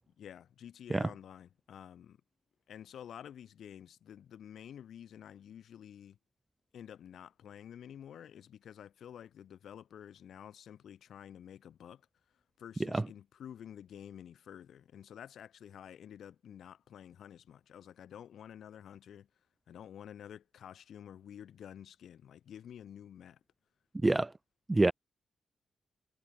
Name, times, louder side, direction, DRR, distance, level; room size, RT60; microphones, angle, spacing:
voice 1, 0.2-2.2 2.7-6.2 6.7-12.0 12.6-19.3 19.7-23.4, left 9 dB, 80° left, 2.3 m, -50 dB
voice 2, 0.9-1.1 12.9-13.0 24.0-24.3 24.7-24.9, right 2 dB, 20° right, 0.4 m, -26 dB
cardioid pair, 110°, 0 cm